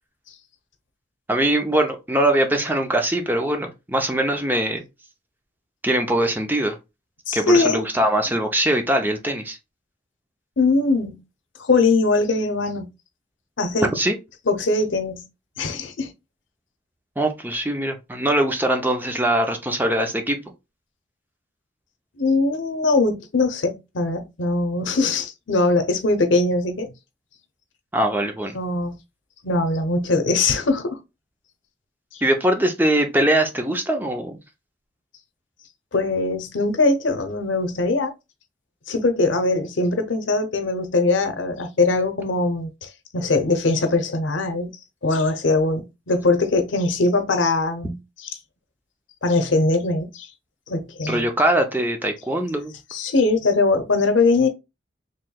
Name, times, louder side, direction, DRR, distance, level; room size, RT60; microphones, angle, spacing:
voice 1, 1.3-4.8 5.8-6.8 7.3-9.6 13.9-14.1 17.2-20.4 27.9-28.5 32.2-34.4 51.1-52.7, right 1 dB, 10° right, 0.5 m, -22 dB
voice 2, 7.3-7.8 10.6-11.2 11.6-12.9 13.6-13.9 14.5-15.3 15.6-16.1 22.2-26.9 28.5-28.9 29.4-31.0 35.9-38.1 38.9-44.8 45.0-48.3 49.2-50.3 50.7-51.3 52.9-54.5, left 3 dB, 85° left, 0.7 m, -21 dB
4.4 x 3.1 x 2.2 m
head